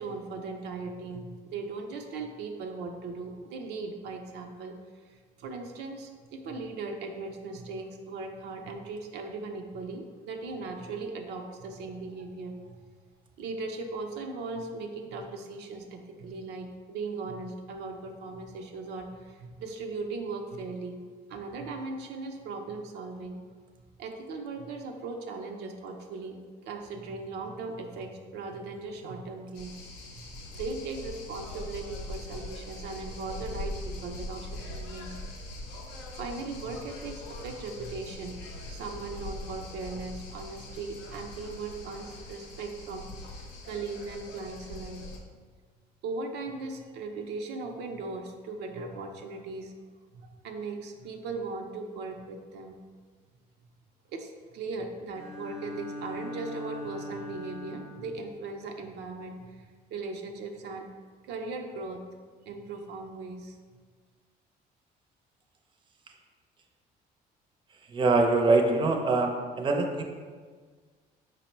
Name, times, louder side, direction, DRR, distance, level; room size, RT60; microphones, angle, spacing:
voice 1, 0.0-4.8 5.0-12.8 13.4-21.0 21.3-23.4 24.0-26.4 26.7-29.7 30.1-30.3 30.5-35.1 36.1-45.0 46.0-49.7 50.1-52.8 54.1-60.9 61.2-62.1 62.4-63.6, right 3 dB, 80° right, 3 dB, 0.5 m, -38 dB
sound 1, 29.5-45.2, left 1 dB, 85° left, 0.7 m, -42 dB
Bowed string instrument, 55.1-58.2, left 1 dB, 35° left, 0.8 m, -40 dB
voice 2, 67.9-70.0, right 3 dB, 30° right, 2 dB, 0.5 m, -24 dB
5.0 x 2.0 x 4.3 m, 1.5 s
cardioid pair, 110°, 17 cm